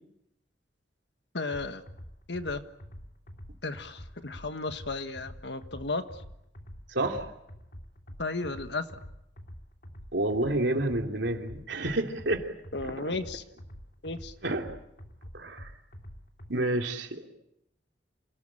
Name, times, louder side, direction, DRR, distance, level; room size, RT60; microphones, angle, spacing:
voice 1, 1.3-1.8 2.3-2.6 3.6-6.1 8.2-8.9 12.7-13.4 14.0-14.3, left 3 dB, 70° left, 9 dB, 1.6 m, -34 dB
sound 1, 1.5-16.5, equal, 50° left, 2.9 m, -47 dB
voice 2, 6.9-7.2 10.1-12.5 12.8-13.1 14.4-14.7 15.3-15.7 16.5-17.3, right 1 dB, 75° right, 3 dB, 3.1 m, -29 dB
27.5 x 18.0 x 8.9 m, 0.82 s
head